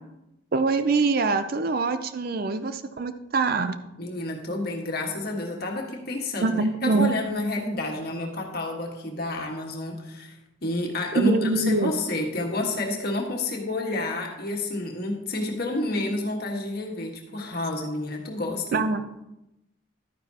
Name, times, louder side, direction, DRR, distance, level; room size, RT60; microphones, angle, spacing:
voice 1, 0.5-3.8 6.4-7.1 11.1-11.9 18.7-19.0, right 3 dB, 50° right, 10 dB, 0.5 m, -24 dB
voice 2, 4.0-18.8, left 2 dB, 50° left, 1 dB, 1.6 m, -29 dB
12.0 x 9.4 x 2.9 m, 0.91 s
head